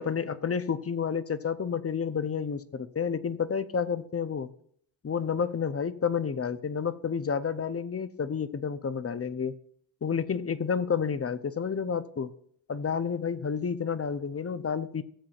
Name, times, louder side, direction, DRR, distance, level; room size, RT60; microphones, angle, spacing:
voice 1, 0.0-4.5 5.0-9.5 10.0-12.3 12.7-15.0, left 6 dB, 30° left, 14 dB, 0.6 m, -30 dB
14.5 x 7.4 x 2.4 m, 0.64 s
cardioid pair, 60°, 45 cm